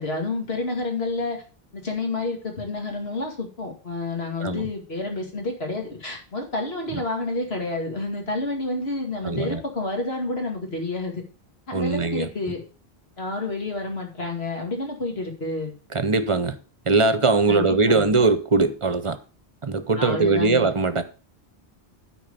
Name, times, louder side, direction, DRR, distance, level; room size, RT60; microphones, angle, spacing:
voice 1, 0.0-1.4 1.7-11.2 11.7-12.6 13.2-15.7 17.5-18.1 20.0-20.6, left 2 dB, 75° left, 2.5 m, -29 dB
voice 2, 9.2-9.6 11.7-12.3 15.9-16.6 16.9-19.2 19.6-21.0, right 3 dB, 35° right, 0.8 m, -21 dB
9.2 x 4.6 x 6.8 m
omnidirectional pair, 1.0 m